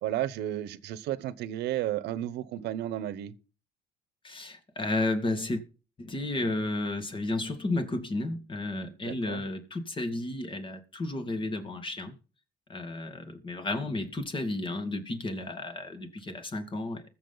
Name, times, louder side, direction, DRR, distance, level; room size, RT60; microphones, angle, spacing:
voice 1, 0.0-3.3 9.0-9.4, right 13 dB, 80° right, 1.0 m, -33 dB
voice 2, 4.2-5.6 6.0-12.2 12.7-17.0, left 2 dB, 30° left, 2.2 m, -32 dB
20.5 x 7.4 x 4.0 m
cardioid pair, 110°, 17 cm